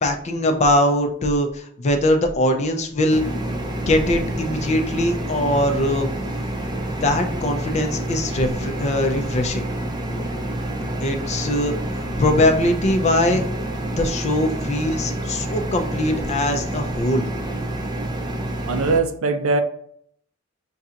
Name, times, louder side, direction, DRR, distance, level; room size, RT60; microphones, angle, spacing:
voice 1, 0.0-3.2 3.9-6.1 6.8-9.7 11.0-13.4 14.0-17.2, left 1 dB, 35° left, 0.5 m, -21 dB
sound 1, 3.1-19.0, right 1 dB, 20° right, 0.5 m, -28 dB
voice 2, 18.7-19.6, right 3 dB, 85° right, 0.5 m, -21 dB
5.4 x 2.8 x 2.4 m
head